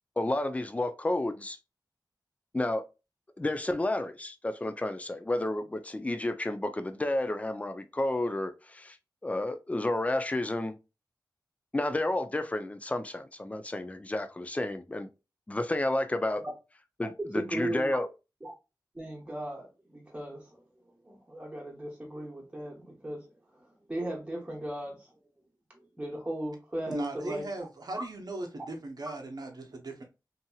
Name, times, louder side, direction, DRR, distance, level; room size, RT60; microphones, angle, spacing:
voice 1, 0.2-1.6 2.5-2.8 3.4-9.0 9.2-10.7 11.7-15.1 15.5-16.4 17.0-18.1, left 1 dB, 20° left, 0.4 m, -31 dB
voice 2, 17.3-17.9 18.4-18.5 18.9-20.4 21.1-23.3 23.9-25.0 26.0-27.5, right 1 dB, 15° right, 1.0 m, -37 dB
voice 3, 26.9-30.0, right 2 dB, 60° right, 0.7 m, -37 dB
2.8 x 2.7 x 2.2 m
wide cardioid pair, 70°, 8 cm